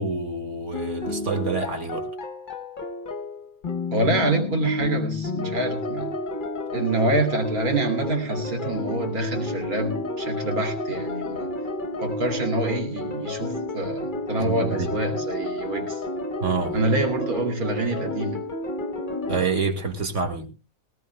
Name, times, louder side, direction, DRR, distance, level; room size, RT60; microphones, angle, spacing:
voice 1, 0.0-2.1 14.4-15.0 16.4-16.9 19.3-20.5, right 4 dB, 55° right, 2.4 m, -27 dB
sound 1, 0.7-19.4, left 2 dB, 40° left, 1.2 m, -31 dB
voice 2, 3.9-6.1 6.7-11.5 12.0-16.0 16.7-18.4, right 2 dB, 90° right, 3.1 m, -26 dB
19.5 x 18.5 x 2.2 m
omnidirectional pair, 1.5 m